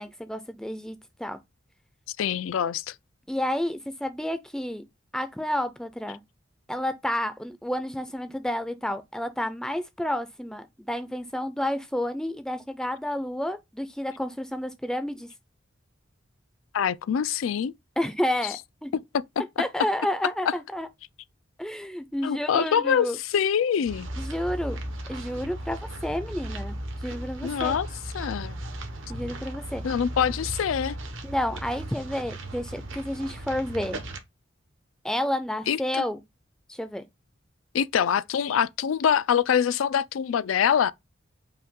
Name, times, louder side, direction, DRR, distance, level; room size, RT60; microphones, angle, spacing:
voice 1, 0.0-1.4 3.3-4.8 5.1-6.2 6.7-15.3 18.0-18.9 19.6-20.9 21.6-23.2 24.2-24.8 25.1-26.8 27.0-27.8 29.1-29.8 31.2-34.0 35.0-36.2 36.7-37.0, left 1 dB, 5° left, 0.4 m, -30 dB
voice 2, 2.2-2.9 16.7-17.7 22.2-24.1 27.4-27.9 28.1-28.6 29.8-31.0 35.7-36.0 37.7-40.9, left 8 dB, 85° left, 0.4 m, -24 dB
sound 1, 23.9-34.2, right 1 dB, 80° right, 1.1 m, -36 dB
5.4 x 2.3 x 3.6 m
head